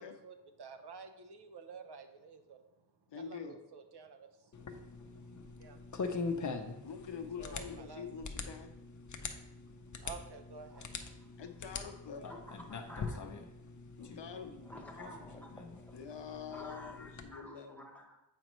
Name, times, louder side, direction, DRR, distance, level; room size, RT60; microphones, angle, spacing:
voice 1, 0.0-2.6 3.2-5.0 5.2-5.8 7.4-8.0 10.0-10.9, right 5 dB, 65° right, 7 dB, 0.7 m, -51 dB
voice 2, 3.1-3.6 6.8-8.7 11.4-12.4 14.0-14.8 15.9-17.8, left 6 dB, 85° left, 5 dB, 0.8 m, -45 dB
sound 1, 4.5-17.3, left 4 dB, 45° left, 0.6 m, -43 dB
voice 3, 12.3-13.5 14.0-18.2, left 1 dB, 5° left, 0 dB, 1.1 m, -52 dB
7.7 x 5.2 x 3.0 m, 0.90 s
wide cardioid pair, 110°, 42 cm